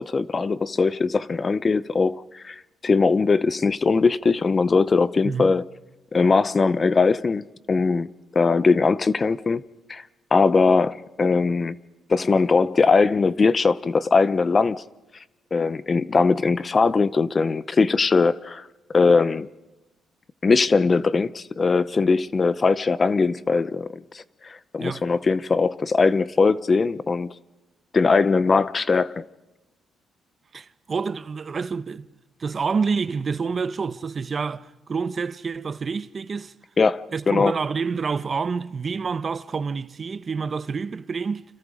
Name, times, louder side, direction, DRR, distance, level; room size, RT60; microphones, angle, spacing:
voice 1, 0.0-5.6 6.1-8.1 8.3-9.6 9.9-10.0 10.3-11.8 12.1-14.8 15.5-18.6 18.9-19.5 20.4-27.3 27.9-29.2 36.8-37.5, left 4 dB, 35° left, 0.8 m, -20 dB
voice 2, 30.5-32.1 32.4-36.5 37.1-41.4, right 5 dB, 40° right, 1.0 m, -28 dB
30.0 x 26.5 x 5.0 m
cardioid pair, 90°, 0 cm